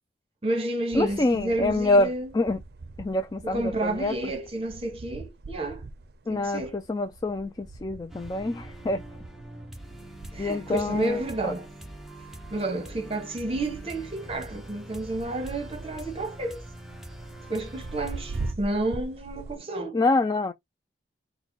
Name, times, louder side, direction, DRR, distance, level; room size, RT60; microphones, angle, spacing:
voice 1, 0.4-2.3 3.4-5.8 6.3-6.8 10.3-11.6 12.5-16.6 17.5-20.0, right 2 dB, 35° right, 1.1 m, -30 dB
voice 2, 0.9-2.6 3.0-4.1 6.3-9.0 10.4-11.5 19.9-20.5, left 2 dB, 20° left, 0.3 m, -26 dB
sound 1, 0.9-19.6, right 2 dB, 60° right, 0.5 m, -43 dB
sound 2, 8.1-18.5, right 1 dB, ahead, 0.8 m, -44 dB
4.1 x 2.2 x 4.4 m
head